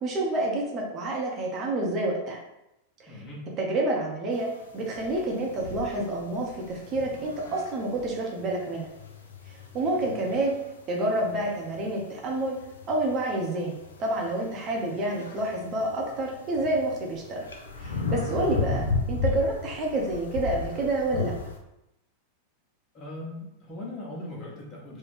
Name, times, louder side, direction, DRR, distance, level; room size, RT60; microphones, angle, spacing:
voice 1, 0.0-2.4 3.0-3.2 3.6-8.9 9.5-10.5 10.9-12.6 12.9-17.4 17.8-21.3, right 2 dB, 30° right, -1 dB, 0.6 m, -28 dB
voice 2, 3.1-3.5 9.8-10.2 18.7-18.9 22.9-25.0, left 1 dB, 30° left, -3 dB, 1.1 m, -40 dB
sound 1, 4.3-21.6, left 4 dB, 70° left, 0.4 m, -35 dB
3.6 x 2.1 x 3.2 m, 0.88 s
figure-of-eight pair, 90°, 0 cm